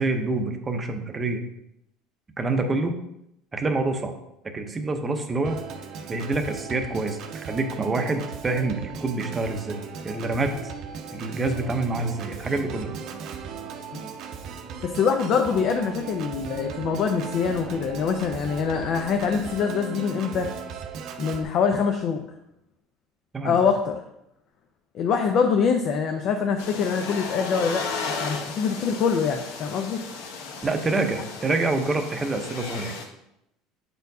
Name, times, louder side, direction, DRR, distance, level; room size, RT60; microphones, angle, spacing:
voice 1, 0.0-1.4 2.4-2.9 3.5-4.1 4.4-5.6 6.1-9.8 10.0-10.7 11.1-12.9 23.3-23.6 30.6-32.9, right 3 dB, 20° right, 5 dB, 0.7 m, -26 dB
Organ, 5.4-21.4, right 6 dB, 50° right, 0.7 m, -37 dB
voice 2, 14.8-20.5 21.2-22.2 23.4-24.0 24.9-27.9 28.1-30.0, left 6 dB, 45° left, 4 dB, 0.5 m, -24 dB
sound 1, 26.6-33.0, left 4 dB, 85° left, 0.9 m, -35 dB
8.2 x 4.4 x 2.7 m, 0.82 s
cardioid pair, 140°, 0 cm